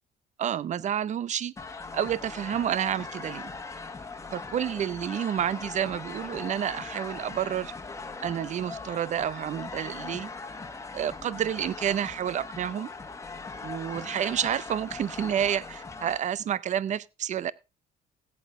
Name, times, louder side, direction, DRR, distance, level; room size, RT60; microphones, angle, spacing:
voice 1, 0.4-1.5 1.9-3.5 4.3-7.7 8.2-10.3 10.9-12.9 13.6-17.5, right 9 dB, 45° right, 0.6 m, -29 dB
sound 1, 1.6-16.2, left 4 dB, 15° left, 1.4 m, -40 dB
16.5 x 8.4 x 3.6 m
cardioid pair, 110°, 17 cm